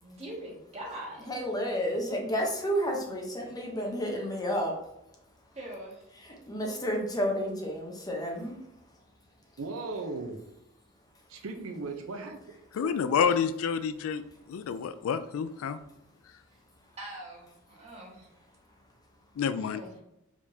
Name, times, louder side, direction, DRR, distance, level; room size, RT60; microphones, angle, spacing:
voice 1, 0.0-1.3 5.5-6.1 17.0-18.3 19.5-19.9, right 1 dB, 30° right, -3 dB, 1.3 m, -42 dB
voice 2, 1.3-4.7 6.2-8.6, equal, 20° left, 0 dB, 0.8 m, -31 dB
voice 3, 9.6-10.4 11.3-12.4 12.8-12.9, right 3 dB, 80° right, 5 dB, 0.6 m, -37 dB
voice 4, 12.7-14.2 14.5-15.8 19.4-19.8, left 7 dB, 70° left, 11 dB, 0.3 m, -28 dB
4.9 x 3.5 x 2.7 m, 0.85 s
head